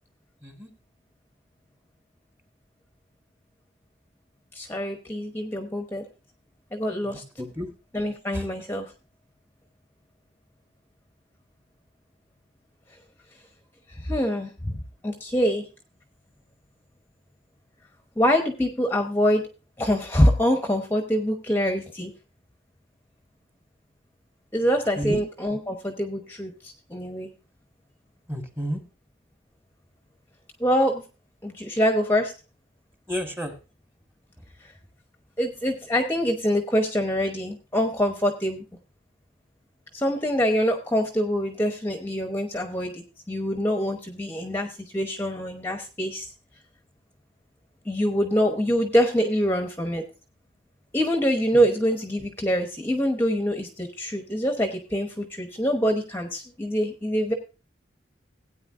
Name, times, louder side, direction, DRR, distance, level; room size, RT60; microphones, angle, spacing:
voice 1, 4.5-6.0 6.7-7.2 7.9-8.9 13.9-15.7 18.2-19.5 19.8-22.1 24.5-27.3 30.6-31.0 31.4-32.3 34.6-34.7 35.4-38.6 39.9-46.3 47.8-50.0 50.9-57.3, equal, 10° left, 4 dB, 0.9 m, -25 dB
voice 2, 7.0-7.7 8.3-8.4 25.0-25.2 28.3-28.8 33.1-33.5, equal, 15° right, 4 dB, 1.6 m, -31 dB
16.5 x 9.0 x 2.5 m, 0.31 s
head